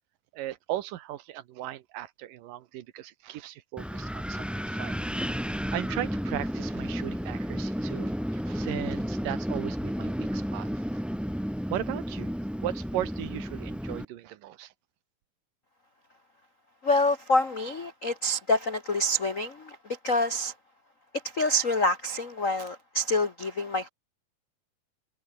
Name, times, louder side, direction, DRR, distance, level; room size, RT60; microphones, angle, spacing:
voice 1, 0.3-5.0 5.5-11.0 11.7-12.3 12.6-14.7, right 13 dB, 80° right, 2.7 m, -37 dB
Wind, 3.8-14.0, equal, ahead, 0.5 m, -32 dB
voice 2, 16.8-20.5 21.2-23.9, left 1 dB, 85° left, 0.7 m, -27 dB
omnidirectional pair, 4.0 m